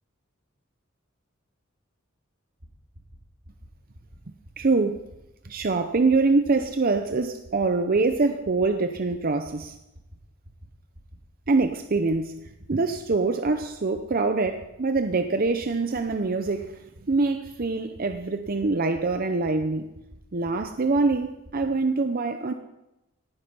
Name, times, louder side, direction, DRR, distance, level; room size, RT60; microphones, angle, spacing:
sound 1, 2.6-2.7 2.9-3.2 3.4-3.7 3.9-4.2 4.4-4.7 4.9-5.2 5.4-5.7 5.9-6.2 6.4-6.7 6.9-7.2 7.4-7.7 7.9-8.2 8.4-8.7 8.9-9.2 9.4-9.7 9.9-10.2 10.4-10.7 10.9-11.2 11.4-11.7 11.9-12.2 12.4-12.7 12.9-13.2 13.4-13.7 13.9-14.2 14.4-14.7 14.9-15.2 15.4-15.7 15.9-16.2 16.4-16.7 16.9-17.2 17.4-17.7 17.9-18.2 18.4-18.7 18.9-19.2 19.4-19.7 19.9-20.2 20.4-20.7 20.9-21.2 21.4-21.7, equal, 65° right, 2.9 m, -47 dB
voice 1, 4.6-5.0 5.4-9.8 11.5-12.4 12.7-19.9 20.3-22.5, right 3 dB, 45° right, 0.7 m, -24 dB
18.0 x 9.5 x 5.5 m
head